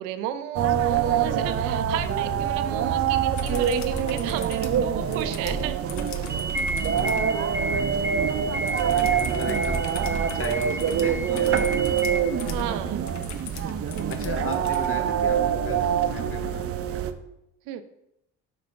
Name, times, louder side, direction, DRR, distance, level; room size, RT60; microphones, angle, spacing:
voice 1, 0.0-5.8 12.4-13.2 17.7-17.8, right 11 dB, 85° right, 11 dB, 0.6 m, -33 dB
sound 1, 0.5-17.1, right 8 dB, 45° right, 0.6 m, -25 dB
sound 2, 3.3-7.3 8.7-14.9 16.6-16.7, left 2 dB, 60° left, 0.9 m, -37 dB
voice 2, 3.4-3.9 6.9-9.8 10.3-12.2 14.1-17.0, left 2 dB, 45° left, 3 dB, 1.4 m, -37 dB
sound 3, 6.3-12.2, right 1 dB, 10° right, 1.2 m, -32 dB
5.2 x 4.9 x 5.7 m, 0.83 s
supercardioid pair, 75°, 31 cm